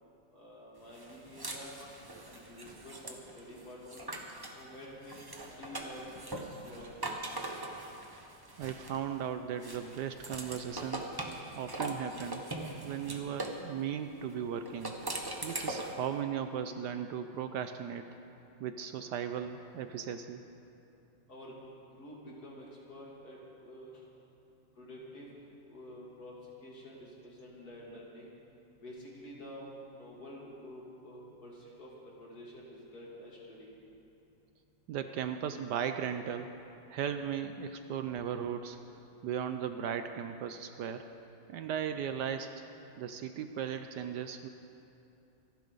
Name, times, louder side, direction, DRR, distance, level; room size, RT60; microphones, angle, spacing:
voice 1, 0.3-1.8 2.3-4.0 4.5-5.2 5.6-6.0 6.6-7.1 21.3-21.5 22.0-24.0 24.8-25.3 25.7-28.3 28.8-33.7, equal, 55° left, -5 dB, 3.3 m, -49 dB
sound 1, 0.9-4.6 5.0-9.2 9.6-13.6 14.6-16.0, right 2 dB, 15° right, 0.8 m, -41 dB
voice 2, 8.6-11.1 11.6-12.4 12.8-14.9 15.4-18.1 18.6-20.4 34.9-36.5 36.9-38.8 39.2-41.1 41.5-42.5 43.0-44.5, right 8 dB, 70° right, 8 dB, 1.1 m, -37 dB
26.5 x 10.5 x 4.0 m, 2.9 s
omnidirectional pair, 2.0 m